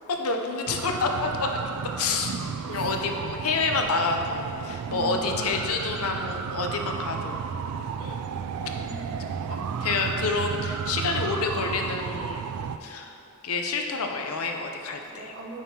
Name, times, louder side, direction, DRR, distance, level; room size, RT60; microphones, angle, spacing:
voice 1, 0.1-1.7 2.0-2.3 2.7-7.6 8.0-8.2 9.5-12.5 12.8-13.1 13.4-15.3, left 4 dB, 70° left, 3 dB, 0.6 m, -28 dB
sound 1, 0.7-12.8, right 6 dB, 85° right, 0.3 m, -33 dB
voice 2, 2.6-2.9 4.8-5.5 8.6-9.5 15.0-15.6, right 1 dB, 55° right, -2 dB, 1.0 m, -41 dB
8.9 x 5.6 x 2.9 m, 2.7 s
head